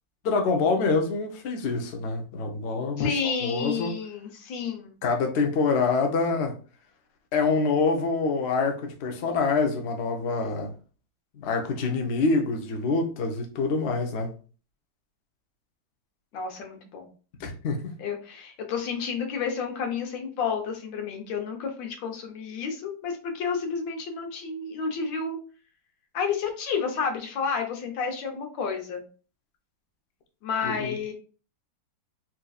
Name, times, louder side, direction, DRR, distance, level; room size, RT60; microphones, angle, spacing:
voice 1, 0.2-3.1 3.4-3.9 5.0-6.5 7.3-10.7 11.4-14.3 17.4-17.9 30.6-31.0, left 4 dB, 65° left, 3 dB, 0.6 m, -26 dB
voice 2, 3.0-5.0 16.3-17.1 18.0-25.4 26.1-29.0 30.4-31.1, left 5 dB, 85° left, 3 dB, 1.6 m, -30 dB
4.2 x 2.6 x 2.3 m, 0.37 s
omnidirectional pair, 2.0 m